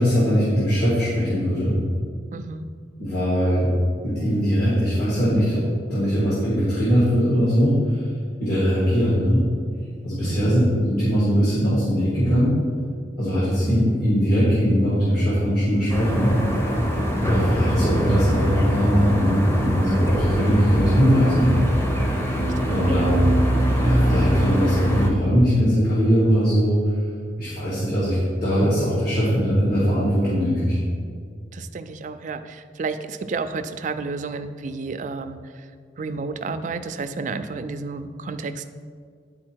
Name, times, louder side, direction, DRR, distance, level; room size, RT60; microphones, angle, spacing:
voice 1, 0.0-1.8 3.0-3.7 4.0-5.6 5.9-8.1 8.4-9.4 10.0-12.6 13.2-16.3 17.2-21.5 22.7-23.2 23.8-26.9 27.4-30.8, equal, 55° left, -9 dB, 1.8 m, -20 dB
voice 2, 2.3-2.7 10.2-10.6 17.0-17.1 22.6-23.2 31.5-35.7 36.0-38.8, right 4 dB, 45° right, 9 dB, 0.4 m, -31 dB
sound 1, 15.9-25.1, equal, 15° left, 0.7 m, -22 dB
9.6 x 4.1 x 4.5 m, 2.1 s
head